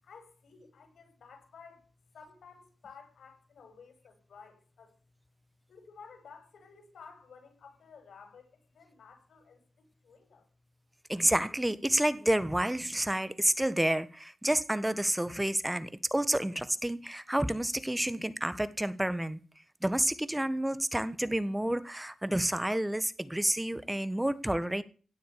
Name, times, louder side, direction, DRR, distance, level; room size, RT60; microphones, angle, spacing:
voice 1, 0.0-1.9 2.1-4.9 5.7-10.4, left 5 dB, 85° left, 7.1 m, -54 dB
voice 2, 11.1-19.4 19.8-24.8, right 1 dB, 10° right, 1.3 m, -29 dB
17.0 x 7.7 x 8.4 m
cardioid pair, 90°, 0 cm